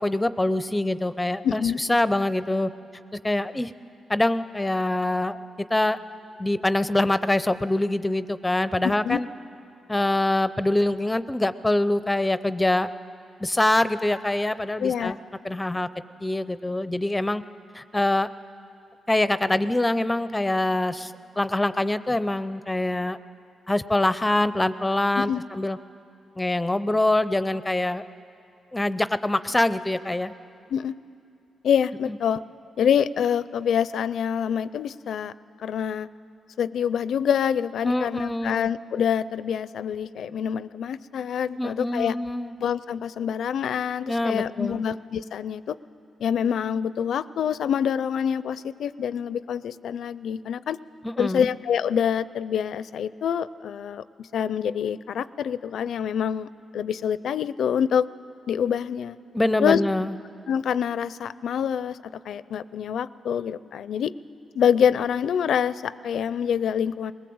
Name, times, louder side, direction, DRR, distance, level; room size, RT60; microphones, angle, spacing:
voice 1, 0.0-2.7 3.2-3.7 4.1-5.4 5.7-6.0 6.4-9.3 9.9-12.9 13.4-15.2 15.4-15.9 16.2-17.4 17.7-18.3 19.1-23.2 23.7-25.8 26.4-28.0 28.7-30.3 32.1-32.2 37.8-38.7 41.6-42.5 44.1-44.8 51.0-51.5 59.3-60.1, left 1 dB, 15° left, 14 dB, 0.6 m, -24 dB
voice 2, 1.4-1.8 8.8-9.2 14.8-15.2 25.2-25.4 30.7-31.0 31.6-32.4 32.8-35.3 35.6-36.1 36.6-42.2 42.6-45.8 46.2-50.8 51.2-56.5 56.7-58.1 58.5-59.2 59.6-59.8 60.5-64.1 64.5-67.1, left 8 dB, 75° left, 17 dB, 0.4 m, -26 dB
20.5 x 19.0 x 7.8 m, 2.6 s
cardioid pair, 70°, 0 cm